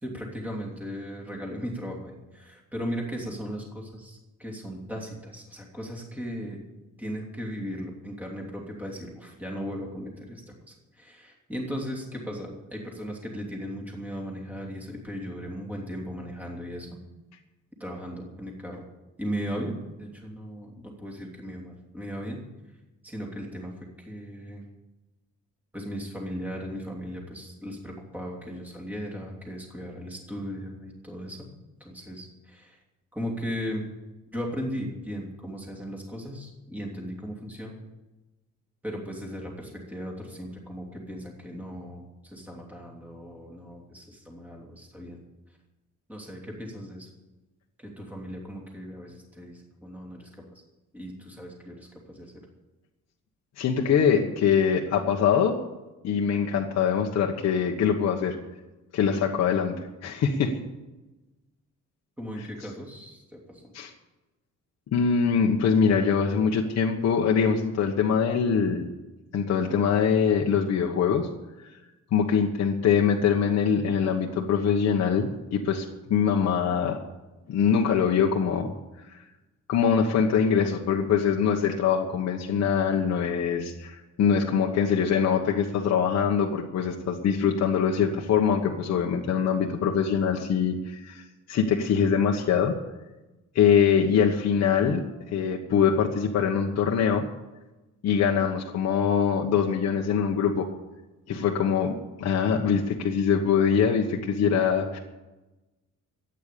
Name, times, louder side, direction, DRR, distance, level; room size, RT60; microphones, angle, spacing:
voice 1, 0.0-6.6 7.0-17.0 17.8-18.8 19.2-22.4 23.0-24.6 25.7-31.5 31.8-32.8 33.1-33.8 34.3-37.8 38.8-45.2 46.1-47.1 47.8-50.5 50.9-52.3 62.2-63.7, equal, 5° right, -1 dB, 2.9 m, -37 dB
voice 2, 53.6-55.5 56.0-58.4 58.9-60.6 63.7-63.9 64.9-68.9 69.3-71.3 72.1-77.0 77.5-78.7 79.1-79.2 79.7-92.7 93.5-95.0 95.3-97.2 98.0-100.7 101.3-105.0, left 7 dB, 55° left, 0 dB, 1.3 m, -23 dB
14.0 x 9.3 x 8.5 m, 1.1 s
cardioid pair, 175°, 31 cm